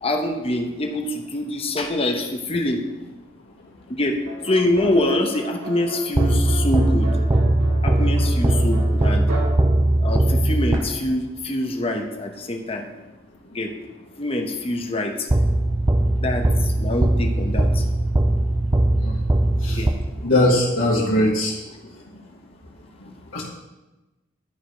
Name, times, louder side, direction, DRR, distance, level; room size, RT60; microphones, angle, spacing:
voice 1, 0.0-2.8 3.9-7.1 7.8-9.2 10.0-12.8 13.5-13.7 14.2-15.3 16.2-17.8 19.7-19.9, left 1 dB, 30° left, 3 dB, 0.9 m, -25 dB
sound 1, 4.3-10.8, right 1 dB, 85° right, 2.1 m, -35 dB
sound 2, 6.2-11.3 15.3-20.5, right 1 dB, 15° right, 0.4 m, -20 dB
voice 2, 20.2-21.5 23.3-23.4, left 1 dB, 75° left, -8 dB, 1.8 m, -20 dB
12.5 x 5.0 x 5.0 m, 1.1 s
head